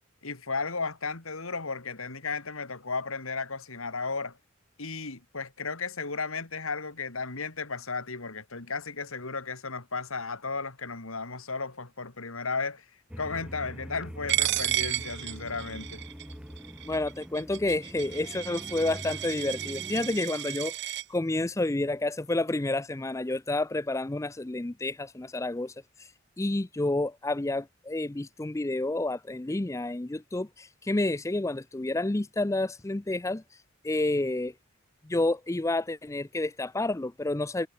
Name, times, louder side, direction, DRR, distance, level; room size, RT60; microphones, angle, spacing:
voice 1, 0.2-4.4 4.8-12.9 13.2-16.0, left 4 dB, 80° left, 2.6 m, -34 dB
sound 1, 13.1-20.2, equal, 5° right, 6.0 m, -43 dB
Coin (dropping), 14.3-21.0, right 13 dB, 55° right, 0.9 m, -33 dB
voice 2, 16.8-26.1 26.4-33.4 33.8-34.5 35.0-37.7, left 2 dB, 15° left, 0.4 m, -30 dB
head